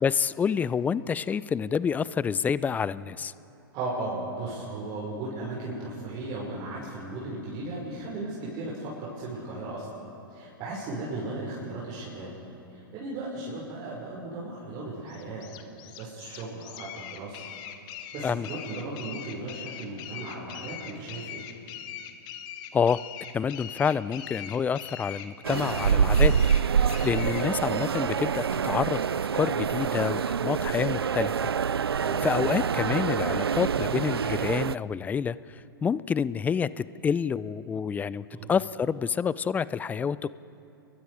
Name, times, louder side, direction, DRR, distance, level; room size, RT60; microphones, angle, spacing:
voice 1, 0.0-3.3 18.2-18.5 22.7-23.0 23.3-26.3 26.8-29.0 29.3-31.5 31.9-40.3, left 6 dB, 15° left, 18 dB, 0.4 m, -28 dB
voice 2, 3.7-9.9 10.3-12.3 12.7-15.5 16.0-17.4 18.1-21.4 32.0-32.2 38.3-38.5, right 2 dB, 35° right, -5 dB, 5.5 m, -36 dB
sound 1, 15.1-27.5, left 10 dB, 35° left, 1.7 m, -41 dB
sound 2, 25.4-34.8, right 7 dB, 85° right, 0.4 m, -26 dB
29.5 x 22.0 x 5.0 m, 2.8 s
figure-of-eight pair, 115°, 13 cm